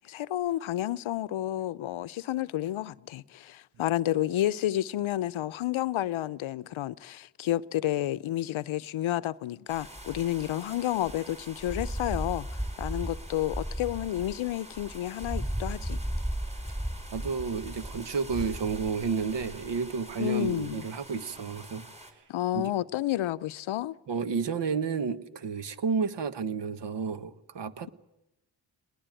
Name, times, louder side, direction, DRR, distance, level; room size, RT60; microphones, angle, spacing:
voice 1, 0.0-16.0 20.2-20.8 22.3-24.0, left 13 dB, 80° left, 0.7 m, -30 dB
sound 1, 9.7-22.1, right 1 dB, 15° right, 4.5 m, -37 dB
voice 2, 17.1-21.9 22.5-22.7 24.1-27.9, right 5 dB, 60° right, 1.4 m, -31 dB
20.0 x 19.5 x 9.1 m
cardioid pair, 70°, 47 cm